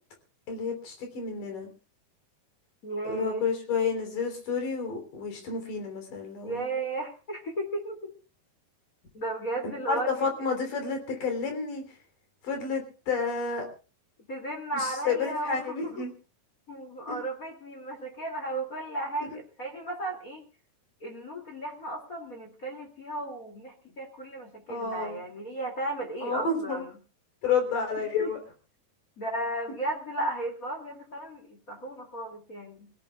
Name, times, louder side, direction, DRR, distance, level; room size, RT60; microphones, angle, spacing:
voice 1, 0.5-1.7 3.0-6.7 9.6-11.8 12.4-13.7 14.7-16.1 17.1-17.2 19.2-19.4 24.7-25.2 26.2-26.8 27.4-28.4, left 5 dB, 65° left, 5 dB, 5.0 m, -30 dB
voice 2, 2.8-3.4 6.4-8.1 9.1-10.3 14.3-16.0 16.7-20.4 21.0-26.9 28.2-28.3 29.2-32.9, right 2 dB, 25° left, 1 dB, 2.5 m, -35 dB
28.0 x 17.0 x 2.3 m, 0.35 s
omnidirectional pair, 4.1 m